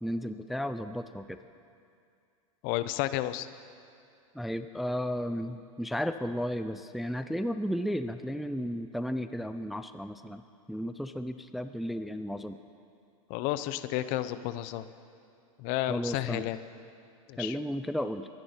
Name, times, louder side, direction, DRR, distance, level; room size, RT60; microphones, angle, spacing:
voice 1, 0.0-1.4 4.3-10.4 10.7-12.6 15.9-16.5 17.4-18.3, equal, ahead, 10 dB, 0.4 m, -34 dB
voice 2, 2.6-3.5 13.3-14.9 15.6-16.6 17.3-17.6, left 14 dB, 50° left, 13 dB, 0.7 m, -31 dB
23.0 x 10.5 x 4.4 m, 2.4 s
hypercardioid pair, 100°, 18 cm